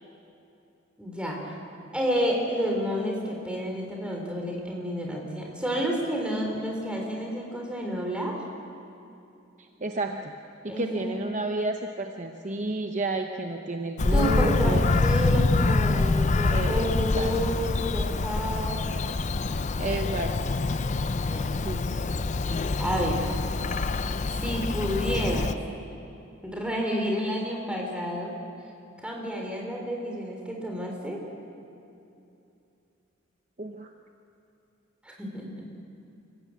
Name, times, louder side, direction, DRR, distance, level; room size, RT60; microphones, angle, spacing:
voice 1, 1.0-1.6 1.9-8.4 10.7-11.1 14.1-18.9 20.3-20.6 21.2-21.5 22.8-23.3 24.3-25.5 26.4-28.3 29.0-31.2 35.0-35.7, equal, 5° right, 0 dB, 3.7 m, -30 dB
voice 2, 9.6-10.3 10.6-15.0 16.5-17.4 19.8-20.6 21.6-22.0 33.6-33.9, right 2 dB, 35° right, 4 dB, 0.9 m, -31 dB
Bird vocalization bird call bird song, 14.0-25.5, left 3 dB, 35° left, 0.5 m, -26 dB
25.0 x 16.0 x 8.4 m, 2.7 s
head